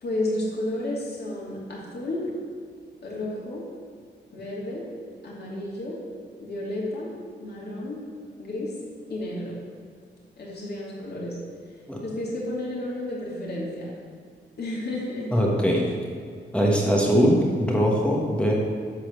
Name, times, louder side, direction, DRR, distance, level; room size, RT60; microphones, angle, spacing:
voice 1, 0.0-2.3 3.0-3.6 4.3-4.8 5.2-6.0 6.4-7.1 7.4-8.0 8.4-8.7 9.1-9.6 10.4-11.4 12.0-13.9 14.6-15.3, left 1 dB, 55° left, -4 dB, 2.7 m, -31 dB
voice 2, 15.3-15.8 16.5-18.5, equal, 5° left, -3 dB, 1.5 m, -21 dB
12.0 x 4.3 x 6.5 m, 2.1 s
wide cardioid pair, 160°, 19 cm